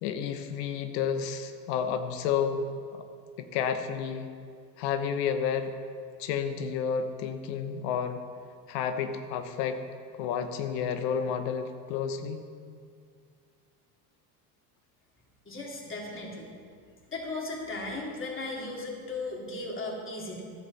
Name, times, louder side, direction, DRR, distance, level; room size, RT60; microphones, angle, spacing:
voice 1, 0.0-2.6 2.9-3.0 3.4-4.3 4.8-5.7 6.2-8.2 8.7-9.8 10.2-12.4, left 7 dB, 80° left, 8 dB, 1.1 m, -31 dB
voice 2, 15.4-16.5 17.1-20.4, left 2 dB, 25° left, -2 dB, 3.1 m, -36 dB
13.5 x 11.0 x 4.2 m, 2.2 s
supercardioid pair, 95°, 48 cm